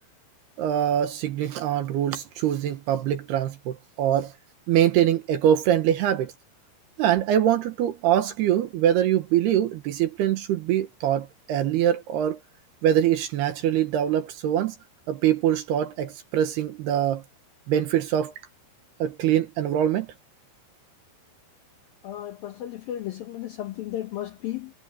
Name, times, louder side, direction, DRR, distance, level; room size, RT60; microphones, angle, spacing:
voice 1, 0.6-4.3 4.7-6.3 7.0-12.4 12.8-14.8 15.1-17.2 17.7-18.3 19.0-20.1, right 10 dB, 70° right, 2.8 m, -23 dB
voice 2, 22.0-24.7, left 13 dB, 75° left, 2.2 m, -34 dB
omnidirectional pair, 5.6 m